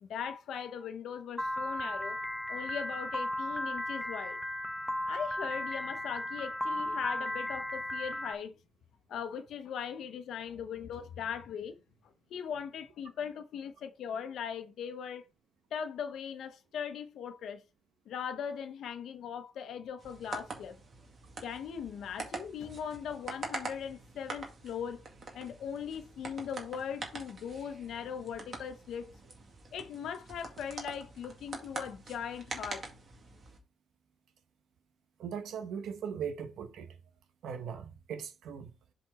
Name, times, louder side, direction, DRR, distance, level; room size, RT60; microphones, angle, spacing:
voice 1, 0.0-2.2 2.5-4.4 5.1-8.5 9.1-11.7 12.3-15.3 15.7-17.6 18.1-20.8 21.4-25.0 25.3-29.1 29.7-32.9, left 7 dB, 65° left, 1.1 m, -39 dB
Piano, 1.4-8.3, left 1 dB, 5° left, 0.5 m, -35 dB
sound 1, 20.0-33.6, right 3 dB, 35° right, 2.2 m, -45 dB
voice 2, 35.2-36.9 37.4-38.7, right 7 dB, 75° right, 1.2 m, -39 dB
7.5 x 4.4 x 4.4 m
cardioid pair, 145°, 0 cm